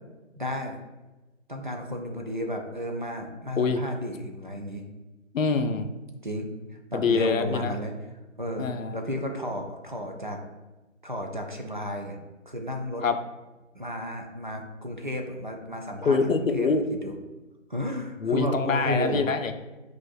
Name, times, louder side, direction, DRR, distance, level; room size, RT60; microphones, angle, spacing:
voice 1, 0.4-0.7 1.5-4.8 6.2-7.9 8.4-10.4 11.0-12.2 12.5-13.0 13.7-16.7 17.0-17.1 17.7-19.3, equal, 40° right, 3 dB, 0.4 m, -33 dB
voice 2, 5.3-5.9 6.9-7.8 8.6-9.0 13.0-13.2 16.0-16.8 18.2-19.5, left 4 dB, 80° left, 8 dB, 0.5 m, -25 dB
5.6 x 2.4 x 2.4 m, 1.1 s
figure-of-eight pair, 150°, 39 cm